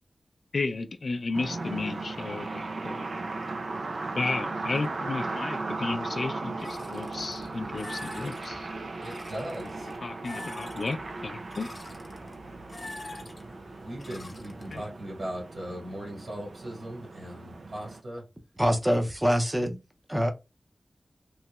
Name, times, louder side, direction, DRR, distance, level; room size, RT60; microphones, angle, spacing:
voice 1, 0.5-3.1 4.2-8.7 9.8-11.7 14.7-14.8, left 3 dB, 70° left, 0.4 m, -33 dB
sound 1, 1.3-18.0, right 3 dB, 75° right, 0.4 m, -37 dB
sound 2, 6.6-14.8, left 1 dB, 40° left, 0.7 m, -45 dB
voice 2, 9.0-9.9 13.8-18.2, right 1 dB, 55° right, 1.8 m, -38 dB
voice 3, 18.6-19.8 20.1-20.3, equal, 15° right, 0.5 m, -24 dB
3.0 x 2.8 x 2.3 m
wide cardioid pair, 95°, 0 cm